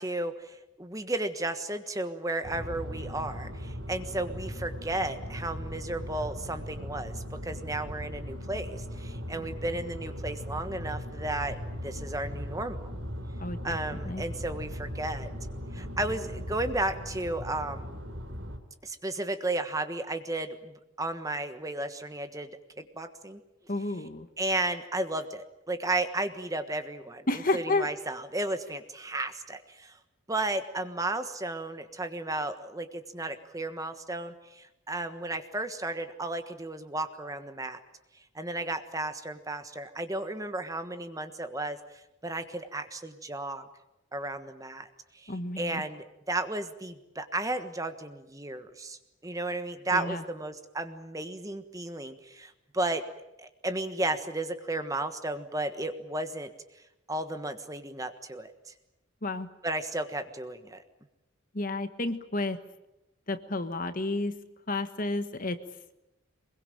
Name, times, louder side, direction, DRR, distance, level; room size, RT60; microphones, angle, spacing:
voice 1, 0.0-12.8 13.6-15.3 15.7-17.9 18.8-22.5 22.8-23.4 24.4-27.3 27.5-30.0 30.3-37.8 38.3-41.8 42.2-43.6 44.1-44.9 45.1-53.0 53.4-56.5 57.1-58.7 59.6-60.8, right 2 dB, 15° right, 9 dB, 1.3 m, -34 dB
sound 1, 2.4-18.6, equal, 60° right, 3.4 m, -38 dB
voice 2, 13.4-13.8 14.0-14.2 23.7-24.3 27.3-27.9 45.3-45.8 49.9-50.2 59.2-59.5 61.5-62.6 63.3-64.4 64.7-65.6, left 2 dB, 40° left, 10 dB, 1.3 m, -31 dB
23.5 x 22.0 x 9.1 m, 0.93 s
head